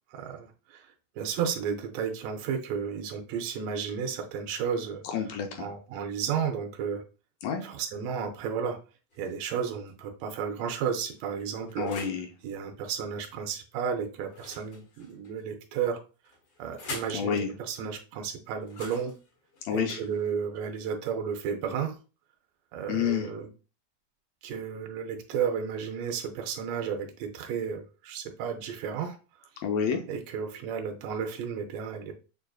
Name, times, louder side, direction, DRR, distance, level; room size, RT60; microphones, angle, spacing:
voice 1, 0.1-0.9 1.2-5.0 5.6-7.0 7.6-8.8 9.2-12.0 12.4-16.0 16.6-19.1 19.7-22.0 22.7-23.5 24.4-29.2 30.1-32.2, right 7 dB, 75° right, 3 dB, 1.7 m, -33 dB
voice 2, 5.0-5.7 7.4-7.6 11.8-12.3 17.1-17.5 19.7-20.0 22.9-23.3 29.6-30.0, left 7 dB, 80° left, 4 dB, 1.7 m, -29 dB
sound 1, 9.1-9.9 10.6-12.3 14.3-15.4 16.2-17.2 18.6-20.6, left 3 dB, 50° left, 2.0 m, -45 dB
6.4 x 2.4 x 2.2 m, 0.33 s
omnidirectional pair, 3.3 m